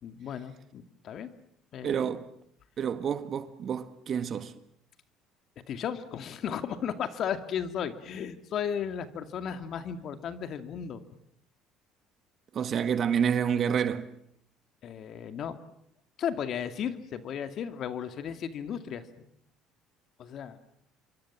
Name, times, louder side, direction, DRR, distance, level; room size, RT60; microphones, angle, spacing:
voice 1, 0.0-1.3 1.7-2.1 5.7-11.0 14.8-15.6 16.2-19.3 20.2-20.7, left 8 dB, 55° left, 2.4 m, -35 dB
voice 2, 1.8-2.3 2.8-4.5 12.5-14.1, right 7 dB, 50° right, 1.7 m, -28 dB
28.0 x 24.0 x 7.5 m
supercardioid pair, 90°, 0 cm